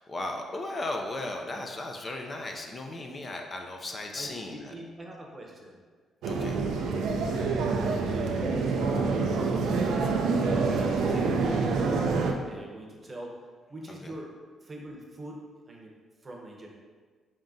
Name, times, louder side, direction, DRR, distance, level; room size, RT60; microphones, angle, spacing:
voice 1, 0.0-4.7 6.2-6.5 7.2-7.4 13.9-14.1, left 2 dB, 30° left, 2 dB, 0.4 m, -36 dB
voice 2, 4.1-5.8 6.3-6.7 7.0-9.7 10.4-12.0 12.4-13.4 13.7-14.3 14.6-15.9 16.2-16.7, right 1 dB, 30° right, -1 dB, 0.8 m, -44 dB
sound 1, 6.2-12.3, right 4 dB, 80° right, 0.4 m, -26 dB
4.0 x 3.6 x 2.6 m, 1.5 s
cardioid pair, 90°, 0 cm